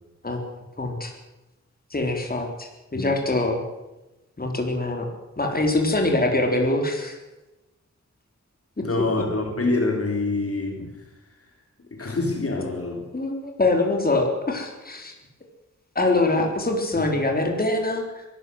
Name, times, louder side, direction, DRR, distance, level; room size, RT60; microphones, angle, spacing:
voice 1, 0.8-1.1 1.9-3.6 4.4-5.1 5.4-7.2 9.0-9.2 12.0-12.1 13.1-15.1 15.9-18.3, left 2 dB, 30° left, 2 dB, 4.1 m, -24 dB
voice 2, 8.8-11.0 11.9-13.1 16.4-16.5 17.0-17.1, left 2 dB, 50° left, 3 dB, 3.8 m, -26 dB
23.0 x 14.5 x 8.0 m, 1.0 s
wide cardioid pair, 105°, 29 cm